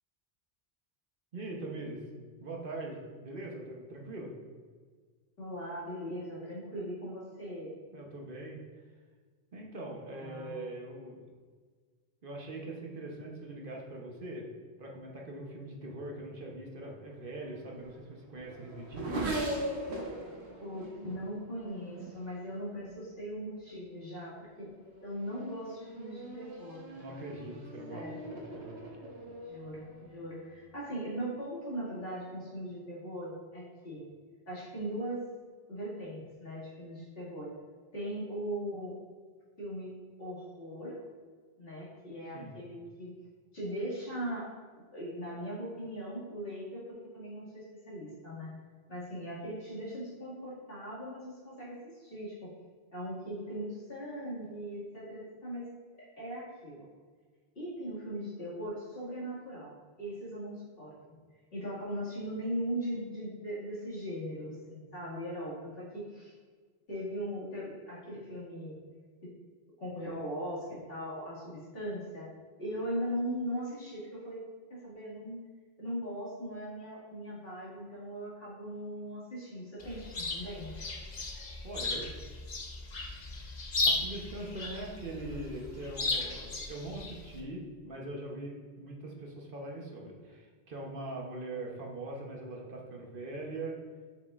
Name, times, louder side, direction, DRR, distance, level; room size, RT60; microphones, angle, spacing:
voice 1, 1.3-2.0 2.4-4.3 7.9-8.6 9.5-11.2 12.2-14.5 14.8-19.3 26.9-28.8 42.3-42.5 81.6-82.1 83.8-93.8, right 2 dB, 55° right, -1 dB, 1.1 m, -42 dB
voice 2, 5.4-7.7 10.2-10.6 20.6-24.7 25.0-27.5 27.9-28.2 29.3-34.0 34.5-35.2 35.7-37.5 37.9-39.0 39.6-39.9 40.2-41.0 41.6-43.1 43.5-44.5 44.9-48.5 48.9-52.5 52.9-55.6 56.2-56.8 57.5-61.2 61.5-66.3 66.9-68.8 69.2-69.3 69.8-72.3 72.6-74.4 74.7-75.4 75.8-80.7, equal, 65° left, -8 dB, 2.3 m, -39 dB
Race car auto racing / Accelerating revving vroom, 17.3-23.1 23.9-24.3 24.7-30.7, right 1 dB, 90° right, 1.4 m, -41 dB
Chirp tweet, 79.8-87.4, left 3 dB, 45° left, 0.9 m, -36 dB
7.3 x 6.2 x 2.4 m, 1.5 s
omnidirectional pair, 1.1 m